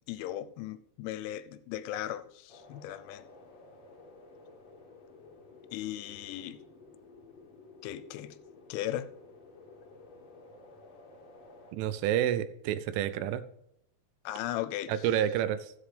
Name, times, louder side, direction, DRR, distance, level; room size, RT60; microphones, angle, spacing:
voice 1, 0.1-3.3 5.7-6.6 7.8-8.4 8.7-9.1 14.2-15.1, left 13 dB, 90° left, 3.0 m, -37 dB
sound 1, 2.5-11.7, left 3 dB, 60° left, 1.8 m, -53 dB
voice 2, 11.7-13.5 14.9-15.7, right 10 dB, 90° right, 3.1 m, -29 dB
14.0 x 7.8 x 3.3 m
omnidirectional pair, 5.4 m